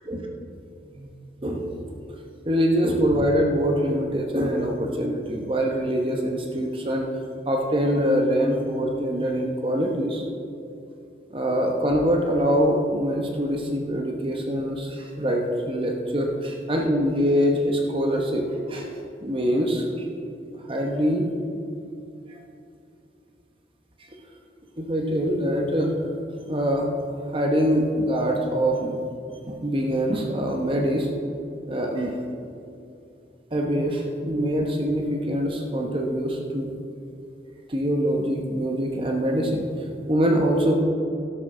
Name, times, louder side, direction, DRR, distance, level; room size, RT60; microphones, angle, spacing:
voice 1, 1.4-1.8 2.4-7.1 7.5-10.2 11.3-18.9 19.2-20.1 20.7-21.3 22.3-22.4 24.8-25.9 26.5-26.9 27.3-29.0 29.5-31.1 31.7-32.2 33.5-36.7 37.7-40.8, equal, 30° right, 1 dB, 1.0 m, -24 dB
12.5 x 11.5 x 3.8 m, 2.6 s
head